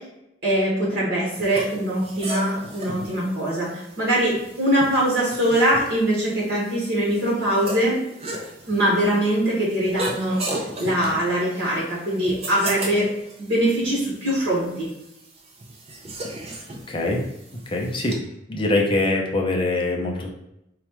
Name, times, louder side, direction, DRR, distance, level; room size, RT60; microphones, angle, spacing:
voice 1, 0.4-8.0 8.7-13.1 13.4-14.9, right 1 dB, 55° right, -6 dB, 1.4 m, -22 dB
sound 1, 1.3-18.1, right 1 dB, 30° right, 0.5 m, -36 dB
voice 2, 16.9-17.2 17.5-18.2 18.5-20.3, left 2 dB, 25° left, 0 dB, 0.5 m, -23 dB
4.1 x 2.3 x 3.0 m, 0.85 s
head